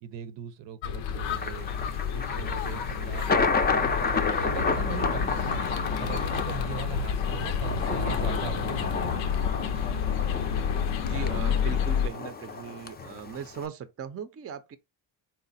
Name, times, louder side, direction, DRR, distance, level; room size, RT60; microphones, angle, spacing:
voice 1, 0.0-1.7 2.1-5.6 6.0-9.5, right 9 dB, 70° right, 0.7 m, -40 dB
sound 1, 0.8-12.1, left 7 dB, 90° left, 0.6 m, -29 dB
Thunder, 1.4-13.7, left 4 dB, 20° left, 0.4 m, -31 dB
voice 2, 11.0-14.8, right 7 dB, 30° right, 0.5 m, -39 dB
4.0 x 2.1 x 3.9 m
cardioid pair, 85°, 45 cm